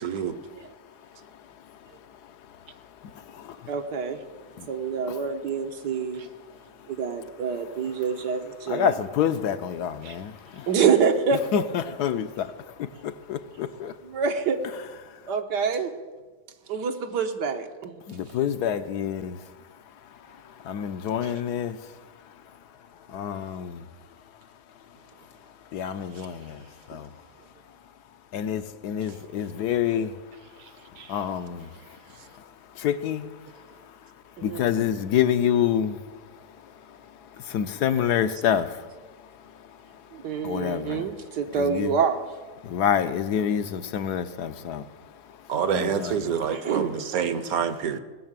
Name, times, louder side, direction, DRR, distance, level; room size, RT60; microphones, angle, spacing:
voice 1, 0.0-0.3 10.1-10.2 31.0-31.1 45.5-48.0, right 7 dB, 65° right, 1.2 m, -27 dB
voice 2, 2.7-3.7 4.5-4.7 5.1-5.2 6.5-6.9 8.7-10.7 11.5-14.0 15.0-15.3 18.1-23.9 24.2-24.9 25.2-27.3 27.7-27.8 28.3-41.1 41.5-42.0 42.6-46.4, left 9 dB, 75° left, 1.2 m, -29 dB
voice 3, 3.7-4.2 4.7-6.2 6.9-8.9 10.7-11.4 14.0-14.6 15.3-15.9 16.7-18.0 34.4-34.6 40.1-42.2 45.5-45.9 46.5-47.0, right 6 dB, 85° right, 1.8 m, -26 dB
18.5 x 6.7 x 8.8 m
omnidirectional pair, 1.8 m